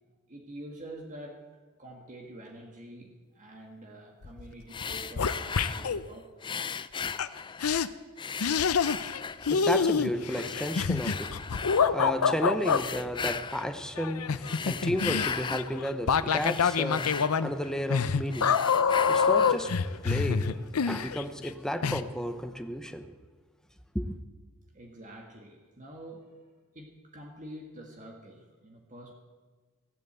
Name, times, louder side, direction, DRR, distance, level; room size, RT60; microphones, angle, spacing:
voice 1, 0.1-1.4 1.8-6.6 24.7-26.4 26.7-29.1, right 1 dB, 35° right, 1.7 m, -47 dB
sound 1, 4.2-4.5 4.8-6.0 7.2-7.3 7.6-7.9 8.4-9.2 9.5-12.8 14.0-21.5 21.8-22.0, left 6 dB, 85° left, 0.6 m, -26 dB
sound 2, 4.7-6.0 6.4-7.8 8.2-9.7 10.3-11.9 12.6-13.7 14.3-15.7 16.1-17.9 18.3-19.7, left 6 dB, 20° left, 0.4 m, -37 dB
voice 2, 9.4-23.1 23.9-24.1, equal, 5° left, 0.8 m, -33 dB
16.5 x 9.1 x 8.1 m
head